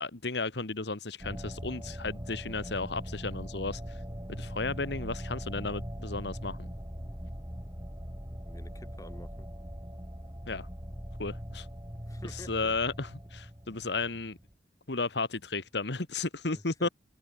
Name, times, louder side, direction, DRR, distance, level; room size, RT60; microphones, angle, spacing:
voice 1, 0.0-4.0 4.3-6.7 10.5-10.7 11.2-11.7 12.3-14.4 14.9-16.9, left 3 dB, 70° left, 1.6 m, -34 dB
sound 1, 1.2-14.5, equal, 20° right, 5.6 m, -41 dB
voice 2, 8.4-9.5 12.1-12.7 16.5-16.9, left 1 dB, 20° left, 3.2 m, -49 dB
open air
head